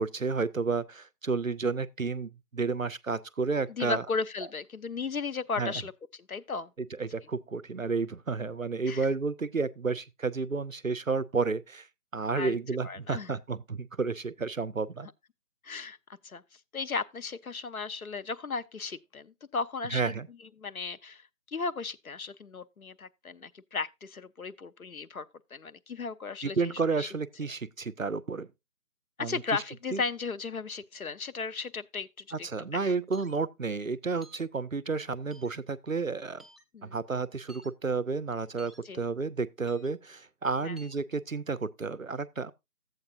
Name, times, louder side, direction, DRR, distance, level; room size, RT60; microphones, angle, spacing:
voice 1, 0.0-4.0 5.6-5.7 6.8-11.9 12.1-15.1 19.9-20.3 26.4-28.5 29.2-29.6 29.9-30.0 32.3-36.4 36.8-42.5, right 4 dB, 60° right, 0.5 m, -31 dB
voice 2, 3.8-5.9 6.3-6.7 8.9-9.1 12.3-12.6 12.8-13.3 15.6-16.0 16.2-16.4 16.7-20.1 20.6-21.2 21.5-25.3 25.5-26.7 27.0-27.1 29.2-32.5 36.7-37.0 38.8-39.0 40.6-40.8, left 4 dB, 65° left, 0.6 m, -35 dB
sound 1, 33.1-33.4 34.2-34.5 35.3-35.5 36.4-36.6 37.5-37.7 38.6-38.8 39.7-39.9 40.8-41.0, right 1 dB, ahead, 0.5 m, -54 dB
12.0 x 7.9 x 2.5 m
figure-of-eight pair, 175°, 46 cm